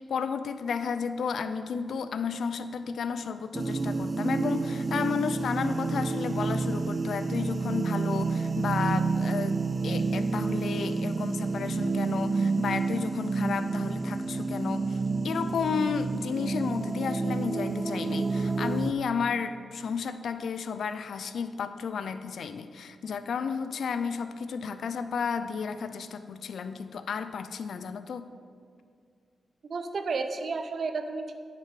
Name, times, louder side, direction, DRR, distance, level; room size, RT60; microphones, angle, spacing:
voice 1, 0.0-28.3, left 6 dB, 75° left, 11 dB, 0.4 m, -32 dB
sound 1, 3.5-18.9, right 3 dB, 35° right, 0.4 m, -29 dB
voice 2, 29.6-31.3, right 4 dB, 65° right, 8 dB, 0.7 m, -32 dB
9.9 x 5.8 x 4.9 m, 2.2 s
cardioid pair, 50°, 0 cm